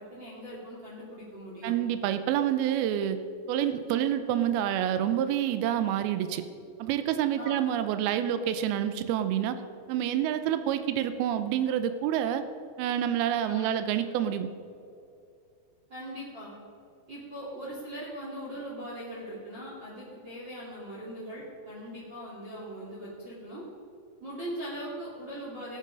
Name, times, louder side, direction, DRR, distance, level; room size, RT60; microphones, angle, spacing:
voice 1, 0.0-1.7 7.4-7.5 13.4-13.8 15.9-16.5 17.1-23.6 24.2-25.8, equal, 35° right, -6 dB, 2.2 m, -40 dB
voice 2, 1.6-3.2 3.5-6.4 6.8-9.6 9.9-12.4 12.8-14.5, right 10 dB, 85° right, 10 dB, 2.3 m, -28 dB
16.0 x 9.5 x 5.2 m, 2.6 s
omnidirectional pair, 5.0 m